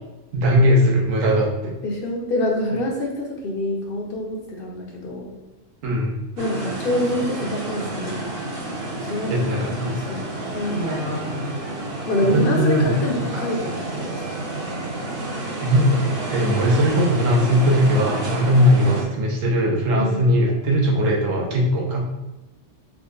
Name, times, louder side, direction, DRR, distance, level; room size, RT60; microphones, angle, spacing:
voice 1, 0.3-1.8 5.8-6.2 9.3-10.0 10.7-11.4 12.2-13.1 15.6-22.0, equal, 85° right, -2 dB, 1.2 m, -19 dB
voice 2, 1.8-5.3 6.4-8.3 9.0-9.7 10.1-10.2 10.5-10.8 12.1-14.1 19.9-20.2, left 1 dB, 55° left, 0 dB, 0.7 m, -26 dB
sound 1, 6.4-19.0, right 2 dB, 50° right, 0.9 m, -30 dB
3.6 x 2.1 x 3.7 m, 1.0 s
omnidirectional pair, 1.3 m